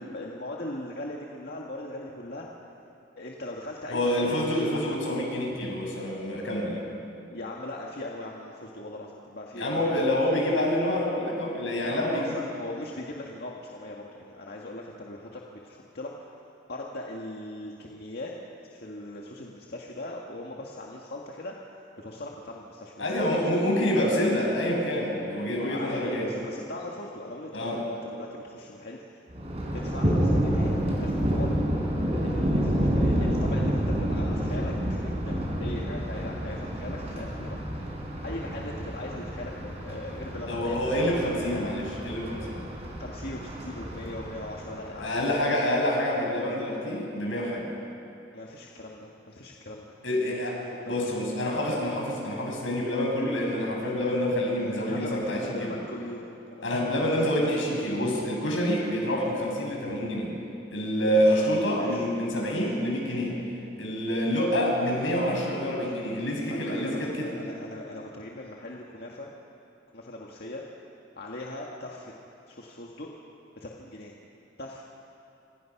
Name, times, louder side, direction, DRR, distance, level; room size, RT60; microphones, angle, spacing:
voice 1, 0.0-2.5 3.2-4.5 4.7-5.0 7.3-10.1 11.8-16.4 16.7-18.3 18.7-21.6 22.0-23.5 25.6-29.0 29.7-31.5 32.2-37.6 38.2-41.7 43.0-45.4 48.3-49.9 50.2-51.1 54.9-57.1 61.1-61.4 61.8-62.0 64.2-64.3 66.5-69.3 69.9-70.6 71.2-72.1 72.5-73.1 73.6-74.1 74.6-74.8, left 1 dB, 55° left, -2 dB, 1.9 m, -39 dB
voice 2, 3.9-6.8 9.6-12.3 23.0-26.3 27.5-27.8 40.5-42.6 44.9-47.7 50.0-50.5 50.9-55.8 56.6-60.3 60.7-63.4 63.8-67.3, equal, 85° left, -1 dB, 7.1 m, -27 dB
Thunder, 29.3-45.2, equal, 35° right, 4.7 m, -29 dB
27.5 x 26.5 x 6.0 m, 2.8 s
head